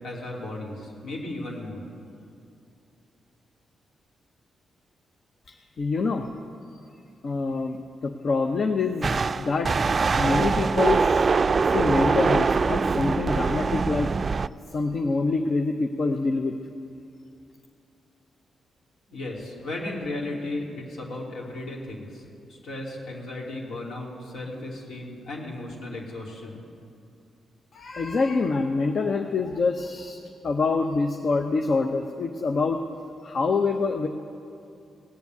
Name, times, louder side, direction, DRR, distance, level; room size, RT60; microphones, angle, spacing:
voice 1, 0.0-1.8 19.1-26.6, left 2 dB, 75° left, -2 dB, 3.0 m, -35 dB
voice 2, 5.8-6.3 7.2-7.8 8.0-9.7 10.0-11.3 11.7-14.1 14.7-16.5 27.7-30.2 30.4-32.8 33.2-34.1, left 3 dB, 60° left, 5 dB, 0.8 m, -25 dB
sound 1, 9.0-14.5, right 4 dB, 45° right, 0.3 m, -23 dB
17.5 x 7.2 x 9.3 m, 2.5 s
supercardioid pair, 50°, 0 cm